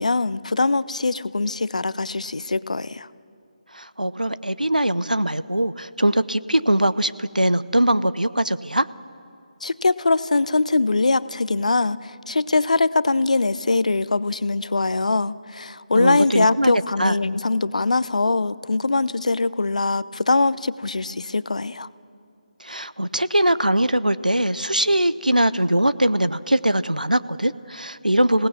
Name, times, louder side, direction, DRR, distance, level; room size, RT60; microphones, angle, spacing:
voice 1, 0.0-3.1 9.6-21.9, left 3 dB, 60° left, 18 dB, 0.6 m, -22 dB
voice 2, 3.7-8.9 15.9-16.7 17.0-17.2 22.6-28.5, right 1 dB, 90° right, 15 dB, 0.6 m, -21 dB
27.5 x 17.5 x 7.2 m, 2.4 s
figure-of-eight pair, 150°, 4 cm